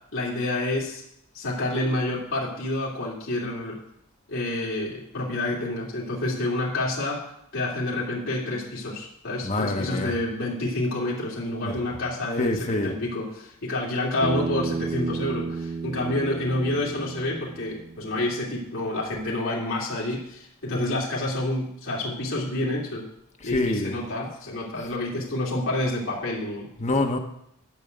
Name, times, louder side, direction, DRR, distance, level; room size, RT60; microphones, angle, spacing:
voice 1, 0.1-1.0 1.3-3.8 4.3-7.2 7.5-23.0 23.4-26.7, left 2 dB, 60° left, -5 dB, 2.7 m, -28 dB
voice 2, 9.4-10.1 11.6-11.8 12.4-12.9 23.4-24.0 26.8-27.2, left 2 dB, 30° left, 4 dB, 1.1 m, -26 dB
Bass guitar, 14.2-18.5, right 4 dB, 35° right, 0.4 m, -32 dB
10.5 x 5.4 x 7.9 m, 0.76 s
head